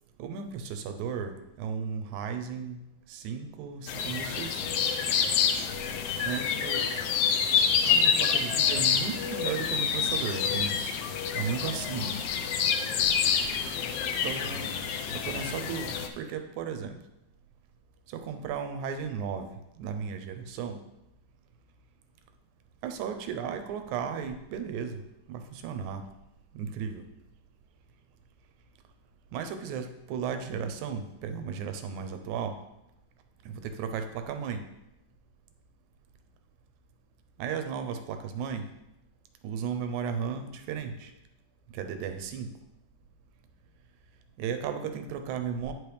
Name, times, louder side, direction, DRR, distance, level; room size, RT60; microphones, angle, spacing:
voice 1, 0.2-2.8 3.1-5.0 6.2-6.9 7.8-10.8 11.3-12.2 14.2-14.8 15.1-17.0 18.1-19.5 19.8-20.8 22.8-25.0 25.3-26.1 26.5-27.0 29.3-32.6 33.4-34.6 37.4-38.7 39.4-41.1 41.7-42.5 44.4-45.7, right 7 dB, 85° right, 7 dB, 2.1 m, -35 dB
sound 1, 3.9-16.1, left 7 dB, 80° left, 1.4 m, -27 dB
9.9 x 4.6 x 3.4 m, 0.88 s
omnidirectional pair, 3.4 m